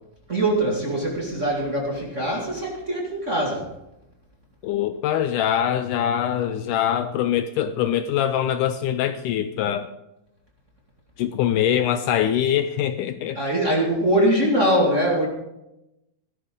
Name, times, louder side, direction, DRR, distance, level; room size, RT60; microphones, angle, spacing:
voice 1, 0.3-3.7 13.3-15.3, right 1 dB, 25° right, -2 dB, 1.8 m, -22 dB
voice 2, 4.6-9.9 11.2-13.4, left 10 dB, 80° left, 10 dB, 2.0 m, -23 dB
16.5 x 13.0 x 3.7 m, 0.89 s
omnidirectional pair, 4.0 m